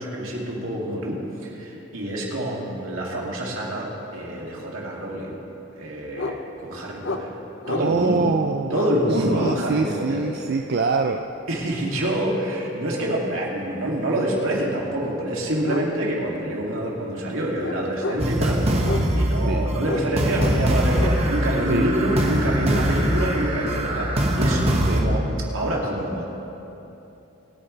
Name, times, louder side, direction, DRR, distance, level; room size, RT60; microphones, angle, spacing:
voice 1, 0.0-5.4 5.8-7.3 7.7-8.3 8.7-10.2 11.5-18.9 19.1-24.6 24.9-25.2 25.5-26.2, right 1 dB, 80° right, -3 dB, 2.7 m, -26 dB
sound 1, 6.2-6.4 7.0-7.3 7.6-7.9 8.6-8.9 9.4-9.6 11.6-11.8 14.7-14.8 15.6-15.9 16.2-16.3 16.7-17.0 17.6-18.4 18.8-19.3 19.8-20.1 20.3-21.2, left 3 dB, 65° left, 0.8 m, -30 dB
voice 2, 7.8-8.8 9.3-11.2 19.5-19.6 21.7-21.9 24.9-25.0, right 4 dB, 50° right, 4 dB, 0.4 m, -24 dB
sound 2, 18.2-25.0, right 1 dB, 30° right, 1.3 m, -23 dB
25.0 x 9.6 x 3.4 m, 3.0 s
head